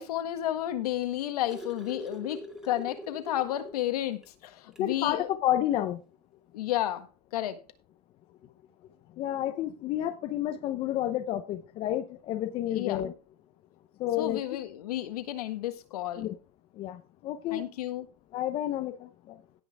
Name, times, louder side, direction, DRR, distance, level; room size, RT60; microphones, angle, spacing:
voice 1, 0.0-5.3 6.5-7.6 12.7-13.0 14.2-16.3 17.5-18.1, left 13 dB, 65° left, 1.6 m, -32 dB
sound 1, 1.2-3.8 4.2-4.3 4.7-4.9 6.0-6.1, equal, 5° right, 1.9 m, -43 dB
voice 2, 4.8-6.0 9.2-13.1 14.0-14.4 16.2-16.4 16.8-17.6 18.3-19.4, left 12 dB, 25° left, 0.8 m, -30 dB
17.5 x 5.8 x 3.5 m
supercardioid pair, 150°, 21 cm